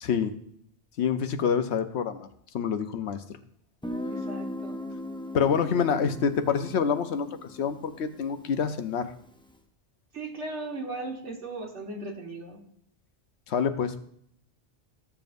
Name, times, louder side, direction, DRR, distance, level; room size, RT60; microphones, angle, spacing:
voice 1, 0.0-0.3 1.0-2.3 2.5-3.2 5.3-9.1 13.5-14.0, left 6 dB, 75° left, 9 dB, 1.0 m, -27 dB
Guitar, 3.8-9.4, left 1 dB, 5° left, 0.4 m, -39 dB
voice 2, 4.0-4.8 10.1-12.6, right 2 dB, 85° right, 0 dB, 1.9 m, -37 dB
14.0 x 7.0 x 2.6 m, 0.68 s
omnidirectional pair, 1.2 m